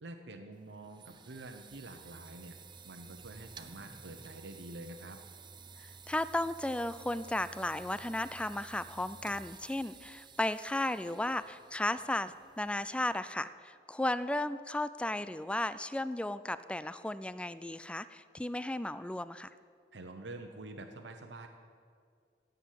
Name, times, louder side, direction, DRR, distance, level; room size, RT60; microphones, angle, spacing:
voice 1, 0.0-2.6 2.8-5.2 19.9-21.5, right 2 dB, 85° right, 4 dB, 1.0 m, -47 dB
sound 1, 0.5-13.3, right 5 dB, 25° right, 0.7 m, -53 dB
voice 2, 5.8-19.5, left 1 dB, 5° left, 14 dB, 0.4 m, -35 dB
16.5 x 8.0 x 7.6 m, 2.2 s
head